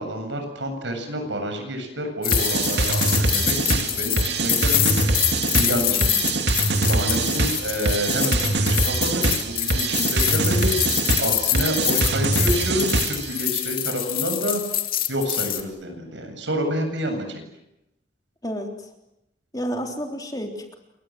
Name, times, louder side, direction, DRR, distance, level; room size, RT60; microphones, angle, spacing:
voice 1, 0.0-5.2 5.5-6.2 6.7-14.6 15.1-17.4, equal, 85° right, 5 dB, 7.7 m, -28 dB
sound 1, 2.2-15.6, left 13 dB, 50° left, 2.6 m, -25 dB
sound 2, 2.3-13.4, right 2 dB, 65° right, 2.6 m, -23 dB
voice 2, 5.8-6.2 18.4-18.7 19.5-20.8, equal, 20° left, 3 dB, 3.4 m, -31 dB
28.5 x 24.0 x 7.8 m, 0.86 s
head